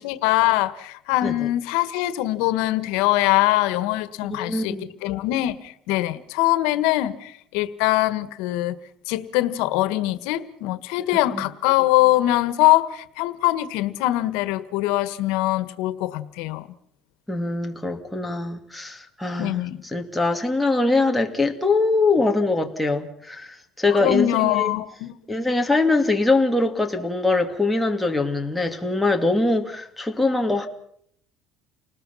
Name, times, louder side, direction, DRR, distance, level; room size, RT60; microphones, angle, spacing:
voice 1, 0.0-4.8 5.0-8.7 9.1-16.7 19.4-19.8 24.0-25.1, left 16 dB, 90° left, 1.5 m, -22 dB
voice 2, 4.3-5.0 11.0-11.4 17.3-24.7 25.3-30.7, left 3 dB, 5° left, 2.4 m, -23 dB
30.0 x 20.0 x 5.8 m
cardioid pair, 135°, 0 cm